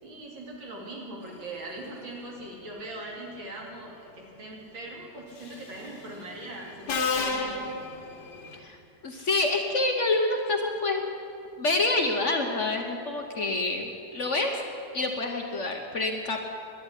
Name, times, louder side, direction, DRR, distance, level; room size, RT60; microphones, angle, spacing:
voice 1, 0.0-7.7, right 2 dB, 80° right, -2 dB, 3.3 m, -41 dB
Subway metro underground, 5.4-5.7 6.9-8.6, left 4 dB, 60° left, 1.9 m, -30 dB
voice 2, 9.0-11.0 11.6-14.5 14.9-16.4, left 2 dB, 45° left, 3 dB, 1.1 m, -27 dB
11.5 x 10.0 x 9.9 m, 2.5 s
omnidirectional pair, 2.1 m